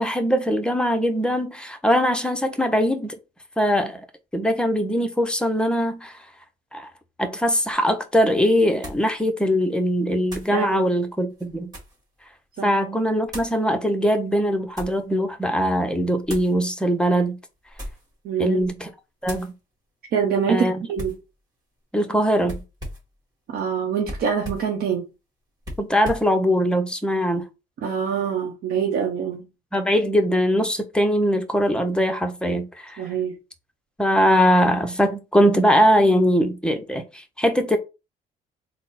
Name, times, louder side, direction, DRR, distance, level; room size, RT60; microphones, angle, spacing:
voice 1, 0.0-3.2 3.6-4.1 4.3-6.2 6.7-6.9 7.2-11.7 12.6-17.4 18.4-18.9 19.2-19.5 20.5-20.7 21.9-22.6 25.8-27.5 29.7-33.0 34.0-37.8, equal, 5° left, 0.6 m, -21 dB
sound 1, 7.7-7.8 8.8-9.1 10.3-10.6 11.3-12.0 13.3-13.6 14.3-15.0 16.2-16.6 17.6-18.1 18.5-18.8 19.2-19.5 21.0-21.3 22.4-23.1 24.0-24.7 25.6-26.3, equal, 20° right, 1.8 m, -37 dB
voice 2, 10.5-10.9 12.6-12.7 18.2-18.6 20.1-21.2 23.5-25.1 27.8-29.5 33.0-33.3, right 7 dB, 65° right, 0.8 m, -25 dB
3.8 x 2.0 x 3.9 m
cardioid pair, 110°, 17 cm